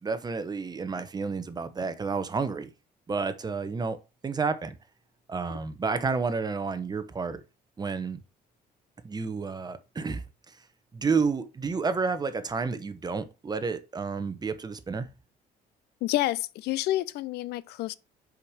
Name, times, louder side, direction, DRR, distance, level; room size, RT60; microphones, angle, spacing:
voice 1, 0.0-2.7 3.1-4.0 4.2-4.8 5.3-7.4 7.8-8.2 9.0-10.6 10.9-15.1, right 4 dB, 25° right, 1.0 m, -30 dB
voice 2, 16.0-17.9, left 15 dB, 75° left, 0.5 m, -29 dB
5.7 x 5.2 x 4.9 m
cardioid pair, 110°, 17 cm